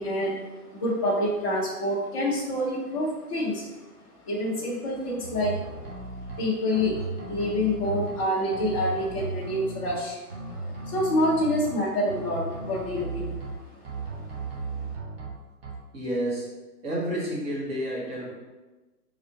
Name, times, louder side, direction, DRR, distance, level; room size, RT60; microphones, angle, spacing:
voice 1, 0.0-3.7 4.2-5.8 6.4-10.2 10.8-13.4 13.8-13.9 14.3-14.4, left 1 dB, 25° left, -7 dB, 0.5 m, -27 dB
sound 1, 5.2-6.4 6.7-8.2 8.5-9.9 10.3-11.7 12.1-13.5 13.8-15.3 15.6-15.7, right 3 dB, 40° right, 1.0 m, -36 dB
voice 2, 15.9-16.5 16.8-18.3, right 1 dB, 20° right, -5 dB, 1.1 m, -30 dB
3.7 x 2.4 x 4.6 m, 1.2 s
figure-of-eight pair, 125°, 46 cm